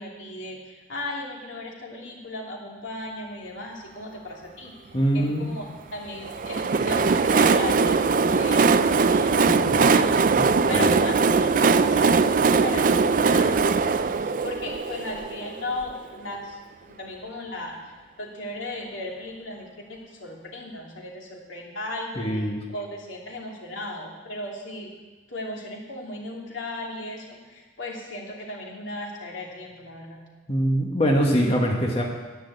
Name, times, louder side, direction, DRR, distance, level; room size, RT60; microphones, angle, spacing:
voice 1, 0.0-4.7 5.1-8.0 8.3-10.2 10.7-16.6 16.9-17.7 18.2-22.3 22.7-24.9 25.3-30.2, left 1 dB, 85° left, -1 dB, 2.8 m, -36 dB
voice 2, 4.9-5.5 9.5-9.8 10.3-10.9 22.2-22.6 30.5-32.0, equal, 30° left, -1 dB, 1.4 m, -23 dB
Train, 6.2-15.9, right 4 dB, 45° right, 0.4 m, -21 dB
10.5 x 9.7 x 8.2 m, 1.3 s
head